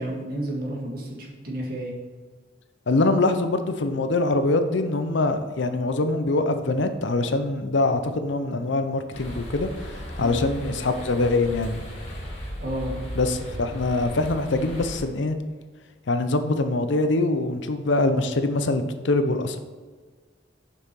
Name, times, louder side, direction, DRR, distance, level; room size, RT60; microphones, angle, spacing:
voice 1, 0.0-1.9 10.2-10.4 12.6-12.9, right 1 dB, 50° right, -2 dB, 1.7 m, -31 dB
voice 2, 2.9-11.8 13.2-15.4 16.1-19.6, left 2 dB, 70° left, 8 dB, 0.6 m, -24 dB
sound 1, 9.1-15.0, equal, 35° left, 2.2 m, -36 dB
6.7 x 5.6 x 4.6 m, 1.5 s
head